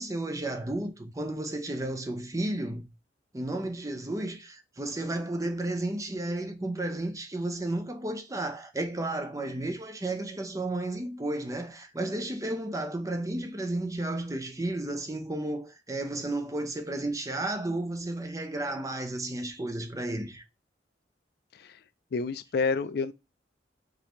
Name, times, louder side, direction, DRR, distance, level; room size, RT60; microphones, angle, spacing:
voice 1, 0.0-2.9 3.3-20.4, right 2 dB, 20° right, 0.7 m, -33 dB
voice 2, 22.1-23.1, left 4 dB, 60° left, 0.4 m, -29 dB
5.2 x 2.7 x 3.0 m
head